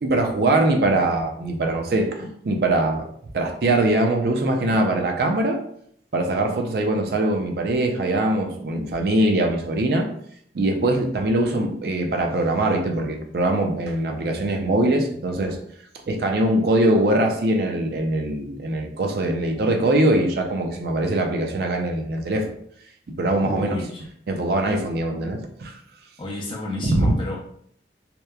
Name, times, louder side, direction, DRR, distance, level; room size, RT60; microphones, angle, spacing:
voice 1, 0.0-3.1 3.3-5.6 6.1-10.1 10.5-15.6 16.1-22.5 23.2-23.8 24.3-25.8 26.8-27.1, right 1 dB, 55° right, 3 dB, 0.4 m, -22 dB
voice 2, 23.4-24.1 26.2-27.4, left 2 dB, 25° left, -2 dB, 0.5 m, -30 dB
2.8 x 2.1 x 2.3 m, 0.65 s
head